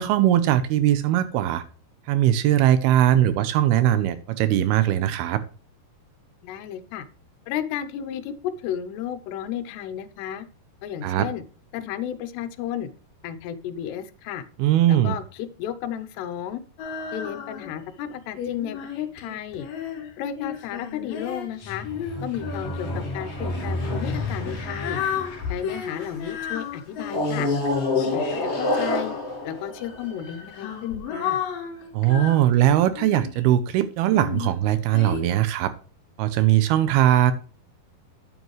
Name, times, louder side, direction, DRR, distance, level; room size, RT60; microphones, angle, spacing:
voice 1, 0.0-1.6 2.1-5.4 11.0-11.3 14.6-15.2 31.9-35.7 36.2-37.3, right 12 dB, 80° right, 13 dB, 2.4 m, -20 dB
voice 2, 6.4-7.1 7.5-10.5 10.8-11.4 11.7-12.9 13.2-14.4 14.9-16.6 17.1-19.7 20.2-21.9 22.2-25.0 25.5-27.5 27.9-29.1 29.4-31.4, left 10 dB, 85° left, 11 dB, 2.9 m, -33 dB
Female singing, 16.8-17.8 18.4-23.2 24.0-29.5 30.3-33.4 34.1-35.2, left 8 dB, 65° left, 4.1 m, -34 dB
sound 1, 21.6-26.3 27.1-30.7, left 2 dB, 45° left, 0.8 m, -29 dB
9.5 x 7.9 x 3.1 m, 0.38 s
omnidirectional pair, 4.8 m